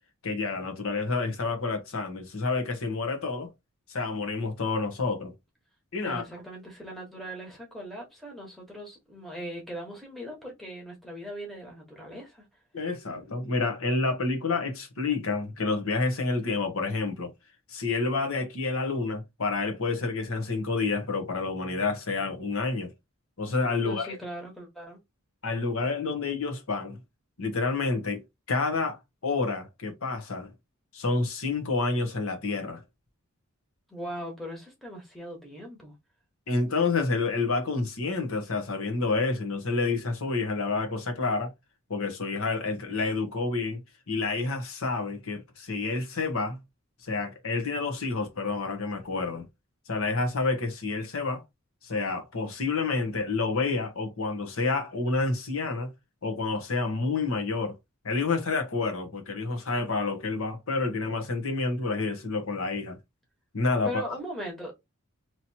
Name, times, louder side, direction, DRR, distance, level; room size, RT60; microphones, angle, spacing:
voice 1, 0.2-3.5 3.9-5.3 5.9-6.2 12.7-17.3 17.7-22.9 23.4-24.2 25.4-27.0 27.4-28.2 28.5-30.5 30.9-32.8 36.5-41.5 41.9-43.8 44.1-46.6 47.0-49.4 49.9-51.4 51.8-55.9 56.2-57.7 58.0-63.0 63.5-64.2, left 3 dB, 70° left, 0.9 m, -29 dB
voice 2, 6.0-12.5 23.8-25.0 33.9-35.9 63.8-64.7, equal, ahead, 1.1 m, -39 dB
3.0 x 2.9 x 2.7 m
head